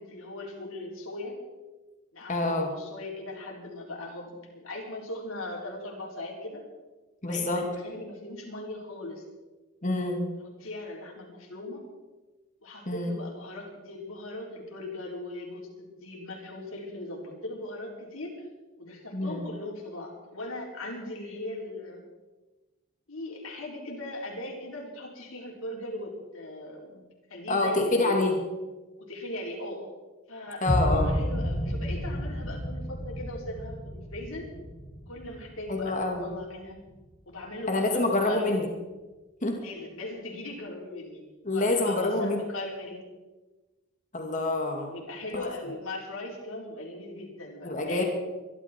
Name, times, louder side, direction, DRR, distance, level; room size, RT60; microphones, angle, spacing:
voice 1, 0.0-1.4 2.1-6.6 7.3-9.2 10.6-11.8 12.6-15.7 16.0-18.5 18.8-22.0 23.1-27.0 27.3-28.2 29.0-29.9 30.3-34.4 35.1-36.8 37.3-38.6 39.6-41.2 41.5-43.0 44.8-48.0, left 2 dB, 70° left, -1 dB, 4.4 m, -39 dB
voice 2, 2.3-2.7 7.2-7.7 9.8-10.2 12.9-13.1 19.1-19.4 27.5-28.3 30.6-31.2 35.7-36.3 37.7-38.7 39.4-39.6 41.4-42.4 44.1-44.9 45.3-45.5 47.6-48.0, left 2 dB, 35° left, 2 dB, 2.3 m, -27 dB
sound 1, 30.6-36.7, equal, 15° left, 7.1 m, -31 dB
23.0 x 12.0 x 4.6 m, 1.2 s
head